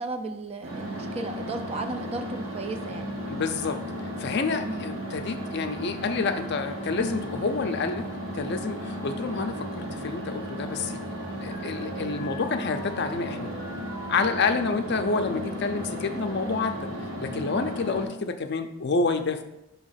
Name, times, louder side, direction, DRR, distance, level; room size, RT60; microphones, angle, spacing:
voice 1, 0.0-3.1 4.6-4.9, right 3 dB, 25° right, 7 dB, 0.3 m, -35 dB
sound 1, 0.6-18.1, equal, 65° right, 1.1 m, -35 dB
voice 2, 3.3-3.8 4.2-8.1 8.3-11.0 11.4-13.5 14.1-16.9 17.2-19.4, left 4 dB, 50° left, 7 dB, 0.5 m, -28 dB
sound 2, 11.5-14.5 15.0-16.6, equal, 5° right, 2.3 m, -44 dB
6.2 x 2.9 x 5.6 m, 0.89 s
head